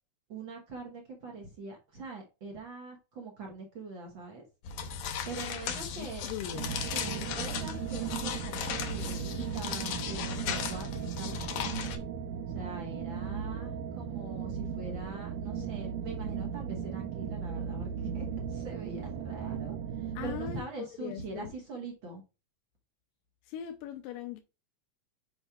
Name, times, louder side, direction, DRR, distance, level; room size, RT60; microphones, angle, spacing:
voice 1, 0.3-4.4 5.2-6.3 6.9-10.9 11.2-12.0 12.5-22.2, right 3 dB, 60° right, 1.3 m, -43 dB
sound 1, 4.6-12.0, left 7 dB, 70° left, 1.8 m, -36 dB
voice 2, 5.7-6.8 20.2-21.5 23.4-24.4, left 10 dB, 90° left, 2.3 m, -41 dB
sound 2, 6.5-20.6, right 7 dB, 80° right, 1.7 m, -37 dB
sound 3, 8.8-12.7, equal, 40° right, 1.1 m, -55 dB
8.6 x 5.4 x 2.4 m
omnidirectional pair, 3.8 m